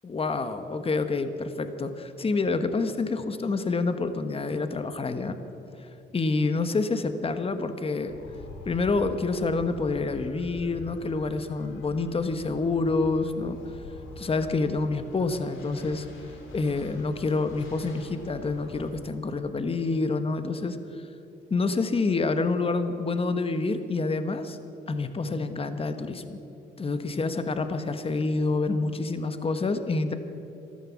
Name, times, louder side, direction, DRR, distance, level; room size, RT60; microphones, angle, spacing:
voice 1, 0.0-5.4 5.8-8.2 8.6-13.6 14.2-16.1 16.5-21.0 21.5-24.6 24.9-26.4 26.8-30.1, left 3 dB, 30° left, 9 dB, 1.1 m, -27 dB
sound 1, 8.1-18.9, left 3 dB, 80° left, 3.0 m, -45 dB
13.5 x 13.0 x 7.1 m, 2.8 s
cardioid pair, 90°, 20 cm